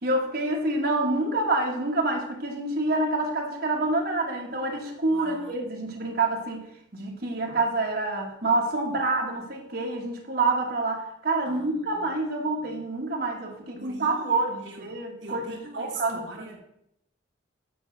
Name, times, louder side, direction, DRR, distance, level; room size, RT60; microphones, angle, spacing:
voice 1, 0.0-6.6 6.9-16.6, right 2 dB, 50° right, 0 dB, 1.4 m, -27 dB
voice 2, 5.1-5.6 11.5-11.7 13.7-14.9 15.2-16.6, right 3 dB, 65° right, 1 dB, 1.1 m, -42 dB
8.5 x 5.2 x 3.9 m, 0.79 s
head